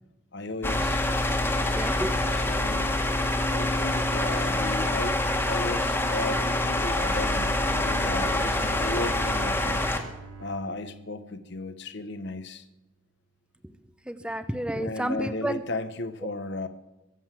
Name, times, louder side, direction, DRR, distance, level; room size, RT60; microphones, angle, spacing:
voice 1, 0.3-1.1 2.3-3.0 3.5-5.2 5.4-9.9 10.4-12.7 14.7-16.7, left 2 dB, 55° left, 11 dB, 1.1 m, -35 dB
sound 1, 0.6-10.0, left 1 dB, 10° left, 1.8 m, -26 dB
voice 2, 1.7-2.2 14.1-15.6, right 1 dB, 5° right, 10 dB, 0.7 m, -30 dB
Bowed string instrument, 6.4-12.3, right 4 dB, 70° right, 2.8 m, -45 dB
23.5 x 8.0 x 7.5 m, 0.99 s
head